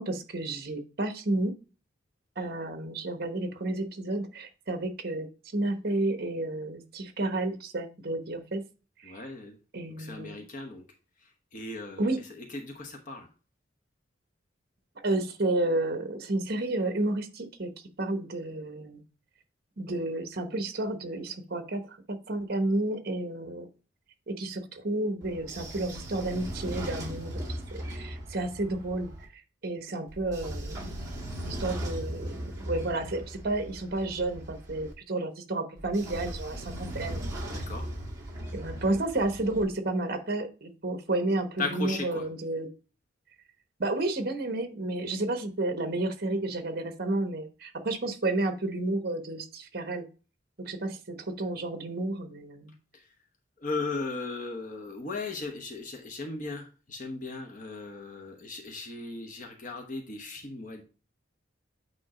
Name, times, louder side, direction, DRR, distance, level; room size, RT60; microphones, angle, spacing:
voice 1, 0.0-1.6 2.4-8.6 9.0-9.3 9.7-10.4 12.0-12.2 15.0-17.7 18.0-19.0 19.8-23.7 24.3-29.1 29.6-30.9 31.4-37.3 38.5-42.7 43.8-50.1 50.6-52.7, right 2 dB, 55° right, 8 dB, 1.1 m, -31 dB
voice 2, 9.0-9.5 10.0-10.8 11.5-13.3 37.5-37.8 41.6-42.3 53.6-60.8, left 3 dB, 45° left, 2 dB, 1.0 m, -37 dB
Train / Sliding door, 25.2-29.2 30.1-34.9 35.8-39.6, right 1 dB, 20° right, 1.9 m, -38 dB
8.7 x 3.1 x 4.9 m, 0.35 s
head